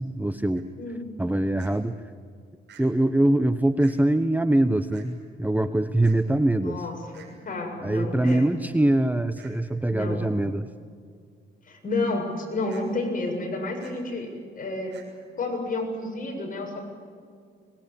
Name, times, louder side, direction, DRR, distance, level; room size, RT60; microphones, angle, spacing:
voice 1, 0.0-0.7 1.2-2.0 2.8-6.9 7.8-10.7, right 1 dB, 10° right, 11 dB, 0.9 m, -23 dB
sound 1, 0.6-0.7 1.6-1.7 2.7-2.8 3.8-3.9 4.9-5.1 6.0-6.2 7.1-7.3 8.2-8.4 9.4-9.5 12.7-12.8 13.8-13.9 14.9-15.1, right 8 dB, 60° right, 7.0 m, -50 dB
voice 2, 0.8-1.1 6.6-8.5 9.9-10.3 11.6-15.0 15.4-16.8, left 2 dB, 45° left, 2 dB, 7.0 m, -30 dB
24.5 x 21.0 x 8.6 m, 2.2 s
cardioid pair, 90°, 20 cm